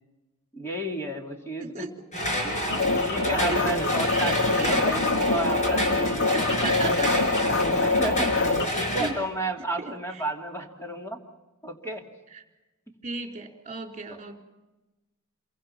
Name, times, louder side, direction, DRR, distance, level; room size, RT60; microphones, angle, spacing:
voice 1, 0.5-1.9 2.4-2.6 3.0-6.7 7.1-7.5 7.8-11.2 11.6-12.0, right 1 dB, 10° left, 1 dB, 3.0 m, -33 dB
voice 2, 1.6-1.9 3.5-3.8 4.1-5.1 6.2-7.3 9.0-9.2 9.8-10.3 12.3-12.4 13.0-14.4, right 3 dB, 30° right, 3 dB, 3.7 m, -36 dB
sound 1, 2.1-9.1, equal, 35° left, 5.8 m, -29 dB
sound 2, 2.7-8.7, left 3 dB, 55° left, 1.6 m, -25 dB
28.5 x 24.0 x 5.9 m, 1.1 s
head